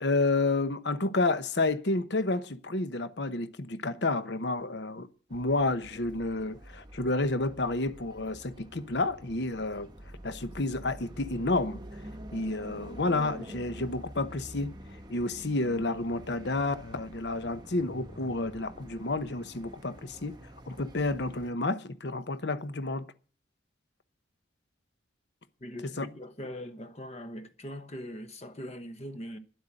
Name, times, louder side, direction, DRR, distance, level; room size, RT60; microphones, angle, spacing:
voice 1, 0.0-9.9 10.2-11.8 12.3-14.7 15.1-20.4 20.7-23.1 26.0-26.1, left 2 dB, 60° left, 0.9 m, -30 dB
sound 1, 5.3-21.5, right 1 dB, 20° right, 1.0 m, -47 dB
voice 2, 25.6-29.4, equal, 35° left, 1.1 m, -41 dB
11.0 x 8.0 x 8.9 m
head